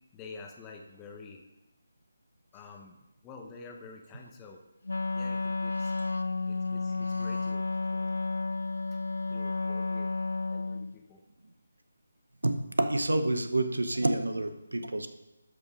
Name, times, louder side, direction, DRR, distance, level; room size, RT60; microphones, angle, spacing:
voice 1, 0.1-1.4 2.5-4.6 5.1-5.9 6.5-8.2 8.9-9.0 9.3-10.1 10.5-11.2, left 4 dB, 15° left, 2 dB, 1.0 m, -48 dB
Wind instrument woodwind instrument, 4.8-11.0, left 3 dB, 75° left, 0.4 m, -32 dB
voice 2, 12.4-15.1, right 2 dB, 75° right, 9 dB, 0.9 m, -29 dB
12.5 x 5.3 x 4.9 m, 0.99 s
figure-of-eight pair, 150°, 0 cm